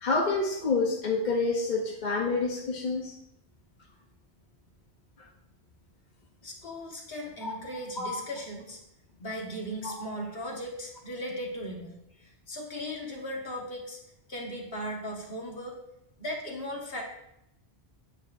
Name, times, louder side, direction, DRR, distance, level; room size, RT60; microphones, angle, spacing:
voice 1, 0.0-3.1 7.4-7.5 8.0-8.2 9.8-9.9, left 3 dB, 45° left, -1 dB, 1.1 m, -28 dB
voice 2, 6.4-8.8 9.2-14.0 14.3-15.8 16.2-17.0, equal, 65° left, -1 dB, 1.9 m, -37 dB
9.7 x 8.9 x 2.6 m, 0.82 s
omnidirectional pair, 1.1 m